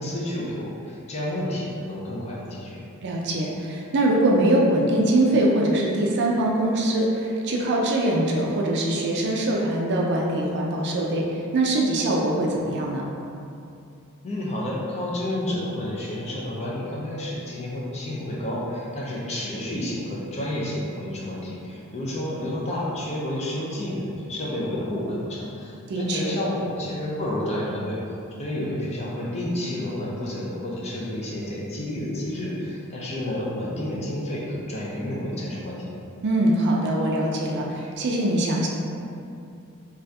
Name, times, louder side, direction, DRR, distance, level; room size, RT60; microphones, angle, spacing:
voice 1, 0.0-2.8 14.2-28.0 28.4-35.9, left 1 dB, 30° left, -5 dB, 0.5 m, -30 dB
voice 2, 3.0-13.1 25.9-26.4 36.2-38.7, right 1 dB, 50° right, -1 dB, 0.4 m, -23 dB
2.7 x 2.4 x 3.3 m, 2.6 s
head